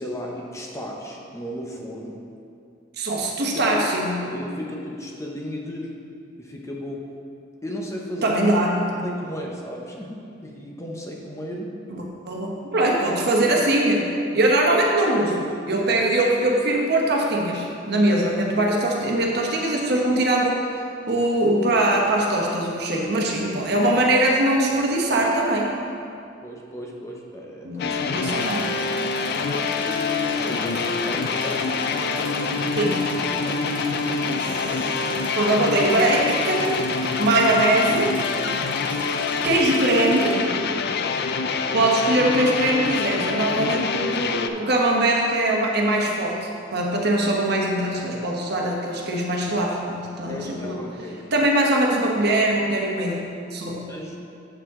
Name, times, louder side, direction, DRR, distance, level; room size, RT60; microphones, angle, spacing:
voice 1, 0.0-2.2 3.5-3.8 4.3-6.0 6.4-7.2 7.6-8.4 9.0-11.8 12.8-12.9 26.4-28.6 29.4-33.0 33.3-35.2 38.8-39.3 41.0-41.7 50.3-51.3 53.7-54.2, equal, 15° left, -1 dB, 0.8 m, -36 dB
voice 2, 3.0-4.2 8.2-9.1 11.9-20.6 21.1-25.7 27.6-28.7 32.8-33.3 35.4-36.8 37.2-38.2 39.4-40.4 41.7-50.8 51.3-53.8, right 1 dB, 55° right, -1 dB, 1.1 m, -22 dB
sound 1, 27.8-44.5, left 5 dB, 55° left, 0.4 m, -26 dB
sound 2, 28.4-40.4, right 1 dB, 25° right, 0.8 m, -37 dB
7.8 x 7.3 x 3.7 m, 2.5 s
head